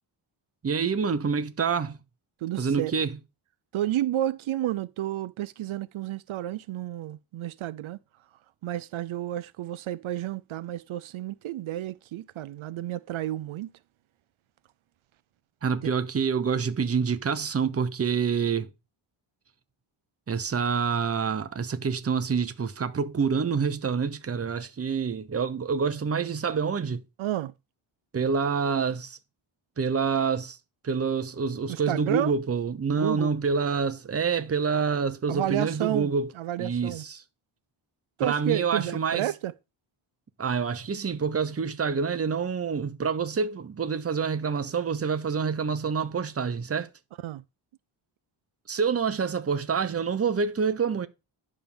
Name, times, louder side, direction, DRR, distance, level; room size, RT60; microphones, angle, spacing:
voice 1, 0.6-2.0 2.6-3.1 15.6-18.7 20.3-27.0 28.1-29.2 29.8-30.6 30.8-36.3 36.6-37.2 38.2-39.3 40.4-46.9 48.7-51.1, right 5 dB, 30° right, 0.8 m, -27 dB
voice 2, 2.4-2.9 3.7-8.0 8.6-13.7 27.2-27.5 31.7-32.3 32.9-33.4 35.3-37.0 38.2-39.5 47.2-47.4, right 13 dB, 80° right, 0.6 m, -31 dB
10.5 x 3.7 x 7.1 m
wide cardioid pair, 135°, 48 cm